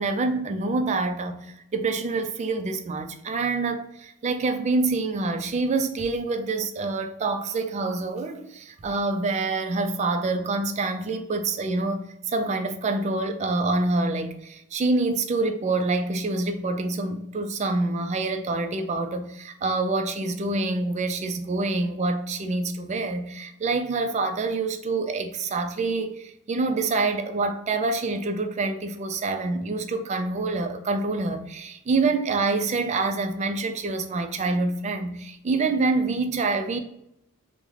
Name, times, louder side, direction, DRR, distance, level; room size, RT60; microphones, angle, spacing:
voice 1, 0.0-36.8, right 3 dB, 30° right, 0.3 m, -26 dB
3.5 x 2.1 x 3.1 m
head